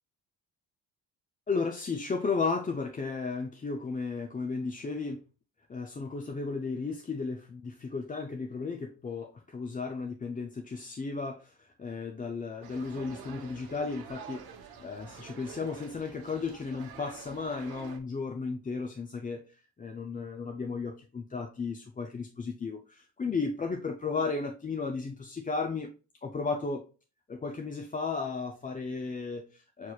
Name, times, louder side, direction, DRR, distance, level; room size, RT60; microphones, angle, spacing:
voice 1, 1.5-5.2 5.7-14.4 14.8-19.4 19.8-25.9 26.2-26.8 27.3-29.9, left 4 dB, 20° left, 3 dB, 0.5 m, -34 dB
sound 1, 12.6-18.0, right 6 dB, 65° right, 1.0 m, -48 dB
6.4 x 2.9 x 2.3 m, 0.35 s
cardioid pair, 100°, 40 cm